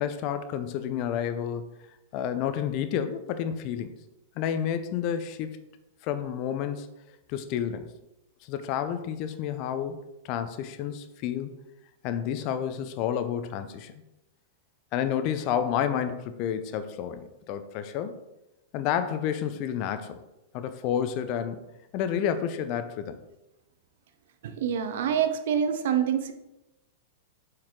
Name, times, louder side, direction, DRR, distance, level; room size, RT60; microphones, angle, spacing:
voice 1, 0.0-1.7 2.1-3.9 4.4-5.5 6.0-6.9 7.3-7.9 8.4-10.0 10.2-11.6 12.0-14.0 14.9-18.2 18.7-20.2 20.5-21.6 21.9-23.2, left 9 dB, 45° left, 10 dB, 0.6 m, -30 dB
voice 2, 24.4-26.3, right 8 dB, 65° right, 8 dB, 0.7 m, -26 dB
7.2 x 4.8 x 3.7 m, 0.94 s
hypercardioid pair, 105°, 0 cm